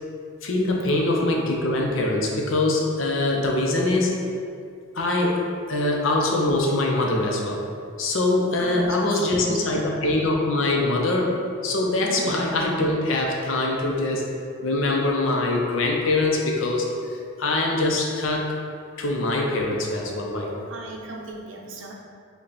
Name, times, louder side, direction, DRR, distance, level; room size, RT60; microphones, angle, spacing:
voice 1, 0.4-4.1 4.9-5.4 5.7-7.6 8.0-11.4 11.6-14.2 14.6-18.5 19.0-20.7, left 2 dB, 75° left, 0 dB, 0.7 m, -23 dB
voice 2, 8.6-10.1 12.1-12.4 20.7-21.9, right 2 dB, 70° right, -1 dB, 0.6 m, -38 dB
5.3 x 2.3 x 4.1 m, 2.3 s
head